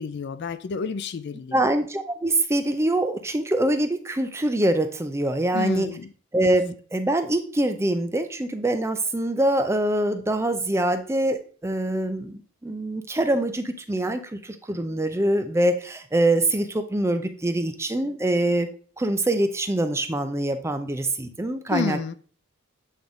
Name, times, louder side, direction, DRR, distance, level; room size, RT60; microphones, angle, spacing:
voice 1, 0.0-1.6 5.5-6.1 21.7-22.1, left 5 dB, 50° left, 0.4 m, -30 dB
voice 2, 1.5-5.9 6.3-22.0, right 1 dB, 10° right, 0.5 m, -24 dB
8.0 x 3.6 x 3.7 m
head